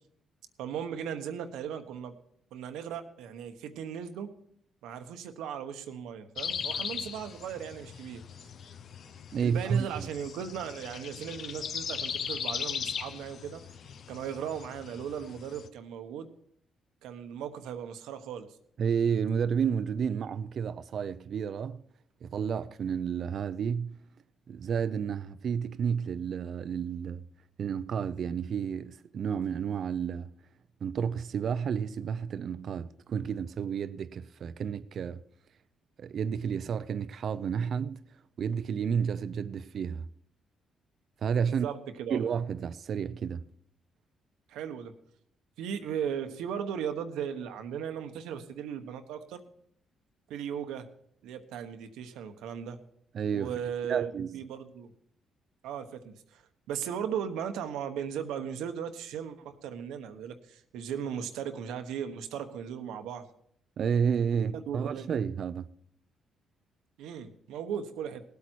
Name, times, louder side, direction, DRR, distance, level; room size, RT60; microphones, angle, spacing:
voice 1, 0.6-2.1 2.5-4.3 4.8-8.2 9.4-13.6 14.1-16.3 17.0-18.5 41.6-42.2 44.5-44.9 45.6-49.4 50.3-50.9 51.2-52.8 53.3-54.9 55.6-56.4 56.7-63.2 64.3-65.1 67.0-68.2, right 8 dB, 90° right, 1.1 m, -37 dB
sound 1, 6.4-15.7, left 7 dB, 60° left, 0.8 m, -38 dB
voice 2, 9.3-10.1 18.8-21.8 22.2-24.0 24.5-27.2 27.6-30.3 30.8-35.2 36.0-38.0 38.4-40.0 41.2-41.7 42.1-43.4 53.1-53.5 53.9-54.4 63.8-65.7, right 7 dB, 60° right, 0.5 m, -31 dB
18.5 x 8.4 x 4.5 m
cardioid pair, 90°, 0 cm